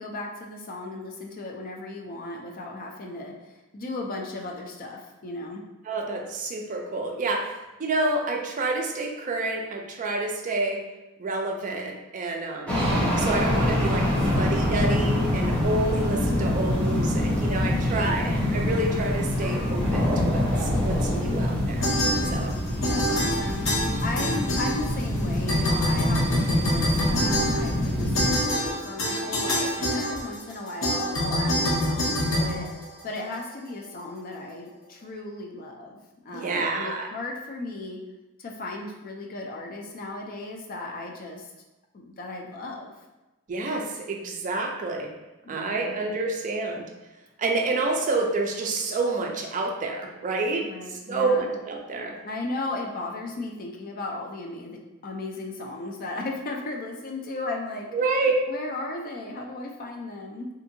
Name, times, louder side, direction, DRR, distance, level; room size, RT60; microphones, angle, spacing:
voice 1, 0.0-5.6 17.8-18.3 22.3-38.0 38.4-41.5 41.9-42.9 45.4-46.0 50.6-51.5 52.2-57.9 58.5-60.5, left 2 dB, 40° left, 0 dB, 0.4 m, -36 dB
voice 2, 5.9-10.8 11.2-12.8 13.2-21.9 22.3-22.6 36.3-37.1 43.5-45.1 45.5-46.9 47.4-52.2 57.9-58.5, right 2 dB, 35° right, 1 dB, 0.4 m, -28 dB
sound 1, 12.7-28.4, left 1 dB, 5° left, 0.7 m, -25 dB
sound 2, 21.8-22.6 22.8-25.2 25.5-33.3, equal, 60° left, 0.8 m, -26 dB
2.7 x 2.6 x 2.6 m, 1.1 s
head